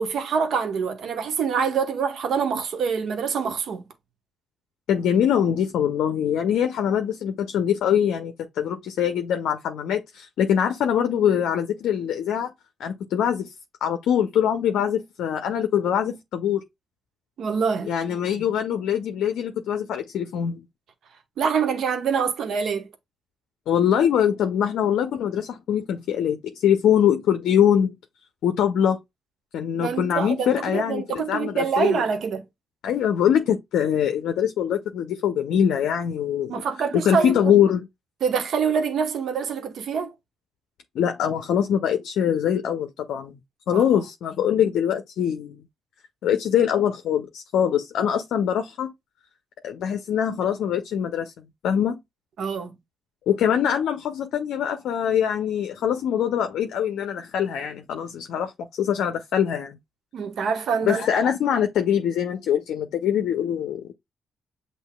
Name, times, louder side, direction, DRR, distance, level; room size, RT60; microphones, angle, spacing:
voice 1, 0.0-3.8 17.4-17.9 21.4-22.9 29.8-32.5 36.5-37.4 38.2-40.1 43.7-43.8 52.4-52.8 60.1-61.1, right 6 dB, 65° right, 0.9 m, -25 dB
voice 2, 4.9-12.5 12.8-13.5 13.8-16.6 17.8-20.6 23.7-27.9 28.4-29.0 29.5-32.0 32.8-36.6 37.0-37.9 41.0-43.3 43.7-45.6 46.2-48.9 49.6-51.9 53.3-59.8 60.9-63.9, left 9 dB, 70° left, 0.5 m, -23 dB
7.9 x 2.7 x 2.2 m
hypercardioid pair, 45°, 0 cm